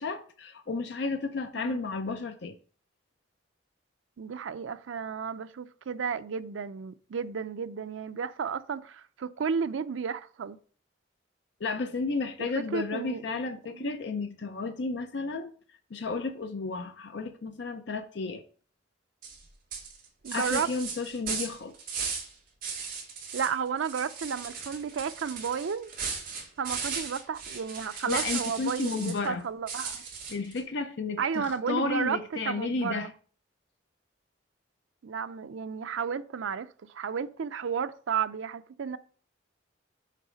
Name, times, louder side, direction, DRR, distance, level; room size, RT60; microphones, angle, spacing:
voice 1, 0.0-2.6 11.6-15.5 15.9-18.4 20.3-21.7 28.1-29.4 30.3-33.1, left 4 dB, 65° left, 0.5 m, -32 dB
voice 2, 4.2-10.6 12.4-13.9 20.2-20.7 23.3-25.9 26.6-30.0 31.2-32.2 32.5-33.1 35.0-39.0, right 6 dB, 85° right, 0.4 m, -33 dB
sound 1, 19.2-19.4 19.7-22.3 22.6-23.5 23.8-29.3 29.7-30.6, right 5 dB, 45° right, 2.2 m, -36 dB
6.6 x 4.1 x 4.9 m
head